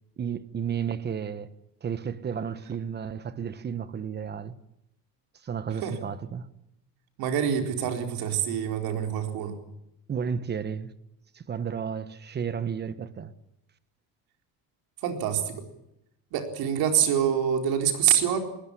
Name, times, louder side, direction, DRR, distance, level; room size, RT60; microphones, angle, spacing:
voice 1, 0.2-1.5 1.8-4.6 5.4-6.5 10.1-10.9 11.3-13.3, right 7 dB, 25° right, 1.2 m, -32 dB
voice 2, 7.2-9.6 15.0-15.6 16.3-18.4, right 9 dB, 75° right, 4.3 m, -26 dB
21.0 x 20.0 x 9.9 m
cardioid pair, 150°, 37 cm